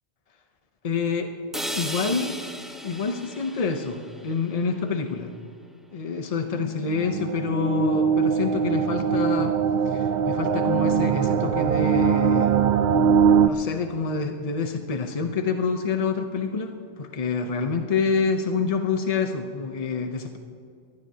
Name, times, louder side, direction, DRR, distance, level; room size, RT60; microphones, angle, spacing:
voice 1, 0.8-1.3 1.8-2.6 2.8-5.3 5.9-9.6 9.9-12.6 13.2-20.4, left 5 dB, 40° left, 5 dB, 0.6 m, -27 dB
sound 1, 1.5-5.6, equal, ahead, 1.0 m, -37 dB
sound 2, 6.5-13.5, right 7 dB, 70° right, 0.4 m, -22 dB
21.5 x 16.0 x 2.8 m, 2.5 s
omnidirectional pair, 1.3 m